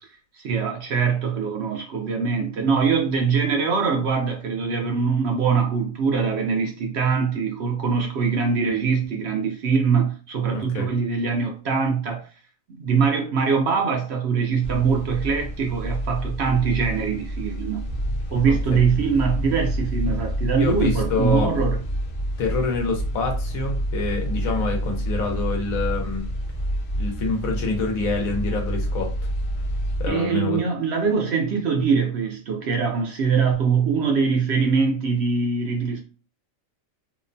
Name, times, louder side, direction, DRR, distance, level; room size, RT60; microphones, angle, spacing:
voice 1, 0.3-12.3 12.8-17.9 18.3-21.8 30.1-36.0, right 5 dB, 65° right, 0.7 m, -23 dB
voice 2, 10.5-10.9 18.5-18.6 20.6-21.6 22.4-26.2 27.0-29.1 30.0-30.7, left 3 dB, 85° left, 1.2 m, -26 dB
sound 1, 14.6-30.1, equal, 65° left, 0.5 m, -28 dB
2.9 x 2.1 x 2.5 m
omnidirectional pair, 1.4 m